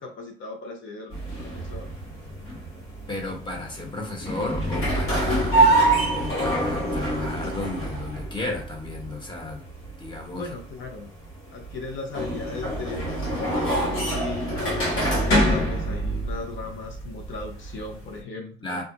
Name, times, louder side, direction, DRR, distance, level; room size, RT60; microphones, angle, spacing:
voice 1, 0.0-1.9 10.3-11.1 11.5-14.5 14.9-18.8, left 3 dB, 75° left, 0.8 m, -37 dB
sound 1, 1.1-18.2, right 1 dB, 90° left, 1.1 m, -26 dB
voice 2, 3.1-9.7 10.0-10.5 18.6-18.8, left 2 dB, 25° left, 1.1 m, -33 dB
2.4 x 2.1 x 3.9 m
cardioid pair, 90°, 20 cm